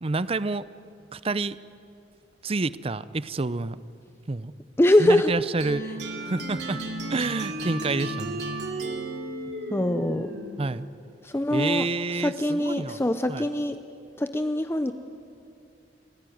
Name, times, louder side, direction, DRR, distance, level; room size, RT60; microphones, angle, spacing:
voice 1, 0.0-0.7 1.1-1.6 2.4-3.8 4.3-4.5 5.0-5.9 6.2-6.8 7.1-8.4 10.6-10.9 11.5-13.0 13.3-13.5, right 3 dB, 35° right, 16 dB, 0.6 m, -28 dB
voice 2, 4.8-5.3 9.7-10.3 11.2-11.9 12.2-13.8 14.2-14.9, left 1 dB, 15° left, 9 dB, 0.6 m, -23 dB
sound 1, 5.6-10.7, right 1 dB, 75° right, 2.8 m, -34 dB
30.0 x 15.5 x 9.3 m, 2.5 s
head